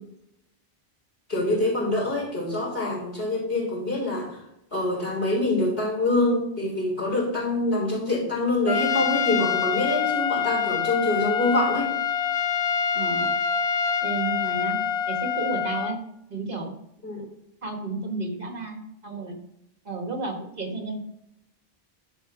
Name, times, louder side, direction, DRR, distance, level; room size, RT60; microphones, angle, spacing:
voice 1, 1.3-4.4 4.7-11.9 17.0-17.2, left 2 dB, 70° left, -4 dB, 4.0 m, -25 dB
Trumpet, 8.7-16.0, left 7 dB, 45° left, 0.5 m, -26 dB
voice 2, 12.9-13.3 14.0-14.8 15.1-16.0 16.3-16.7 17.6-19.3 19.9-21.0, right 3 dB, 60° right, 2 dB, 1.9 m, -32 dB
11.0 x 5.0 x 4.8 m, 0.80 s
omnidirectional pair, 1.0 m